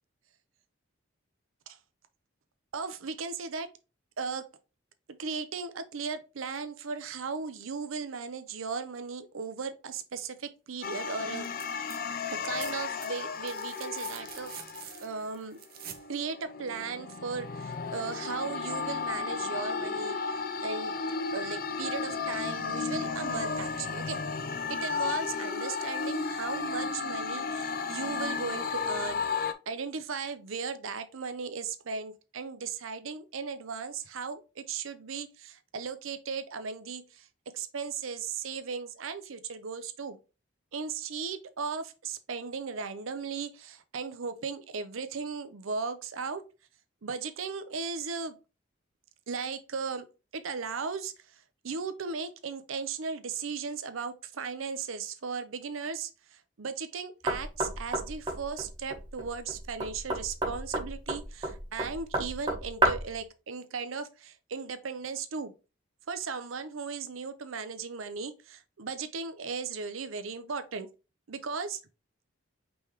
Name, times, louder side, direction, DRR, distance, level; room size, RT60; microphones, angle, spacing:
voice 1, 2.7-3.7 4.2-4.4 5.2-11.5 12.3-14.5 15.0-15.6 16.1-20.2 20.6-20.9 21.3-24.2 24.7-37.3 37.5-40.2 40.7-46.4 47.0-48.3 49.3-50.1 50.3-51.1 51.6-65.5 66.1-70.9 71.3-71.8, right 5 dB, 85° right, 0.7 m, -36 dB
sound 1, 10.8-15.2 15.8-29.5, left 5 dB, 45° left, 0.4 m, -34 dB
sound 2, 11.4-12.0 12.3-16.1 17.7-17.8, right 9 dB, 45° right, 0.6 m, -46 dB
Knock, 57.3-63.2, right 2 dB, 25° right, 1.0 m, -32 dB
5.3 x 3.4 x 3.0 m
head